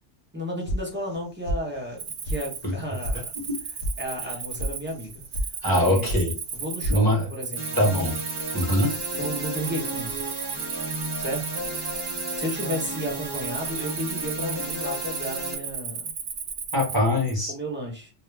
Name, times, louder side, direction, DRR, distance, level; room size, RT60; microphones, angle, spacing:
voice 1, 0.3-3.3 4.0-5.2 5.6-6.1 6.5-7.8 9.1-10.2 11.2-11.4 12.0-16.1 17.5-18.1, equal, 10° right, -2 dB, 0.8 m, -33 dB
sound 1, 0.7-1.2 1.5-2.0 2.2-2.4 2.7-3.2 3.4-3.9 4.2-4.7 5.0-5.5 5.7-6.2 6.5-7.0, equal, 75° left, 0.9 m, -29 dB
Cricket, 2.0-17.3, right 6 dB, 70° right, 0.8 m, -35 dB
voice 2, 5.6-6.3 6.9-7.3 7.8-8.2 8.5-8.9 16.7-17.5, left 1 dB, 20° left, -2 dB, 1.0 m, -22 dB
sound 2, 7.5-15.5, right 1 dB, 35° right, 0.4 m, -33 dB
2.4 x 2.1 x 3.3 m, 0.34 s
omnidirectional pair, 1.3 m